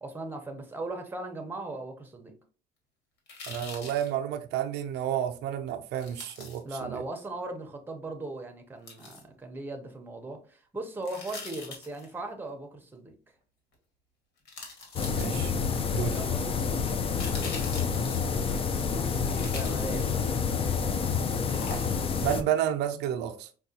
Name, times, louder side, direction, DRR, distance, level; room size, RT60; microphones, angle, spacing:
voice 1, 0.0-2.3 6.6-13.1 16.1-16.6 18.7-20.2, right 2 dB, 10° right, 0.7 m, -38 dB
sound 1, 3.3-4.1 5.9-6.6 8.9-9.2 11.0-12.1 13.7-13.8 14.5-15.6 16.8-18.3 19.2-20.4 21.5-22.2 22.5-22.6, left 3 dB, 80° left, 1.3 m, -43 dB
voice 2, 3.5-7.0 15.2-15.5 15.9-16.2 22.2-23.5, right 10 dB, 80° right, 0.4 m, -30 dB
sound 2, 15.0-22.4, left 5 dB, 35° left, 0.4 m, -28 dB
4.7 x 2.3 x 2.7 m
cardioid pair, 110°, 17 cm